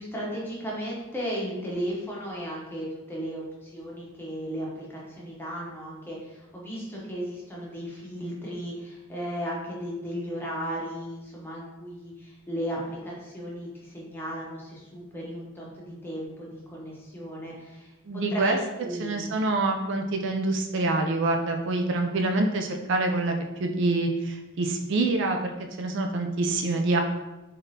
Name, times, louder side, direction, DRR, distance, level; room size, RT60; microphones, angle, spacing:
voice 1, 0.0-19.3, equal, 10° left, -5 dB, 0.9 m, -35 dB
voice 2, 18.1-18.6 19.0-25.5 25.8-27.0, right 2 dB, 60° right, 4 dB, 0.4 m, -26 dB
3.6 x 3.5 x 2.8 m, 1.1 s
head